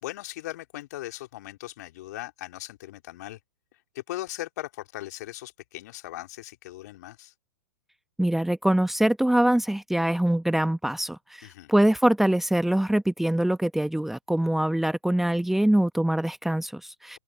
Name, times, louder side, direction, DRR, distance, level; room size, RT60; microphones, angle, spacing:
voice 1, 0.0-3.4 3.9-7.3 11.4-11.7, left 16 dB, 55° left, 3.4 m, -38 dB
voice 2, 8.2-17.2, right 1 dB, ahead, 1.2 m, -24 dB
hypercardioid pair, 110°, 11 cm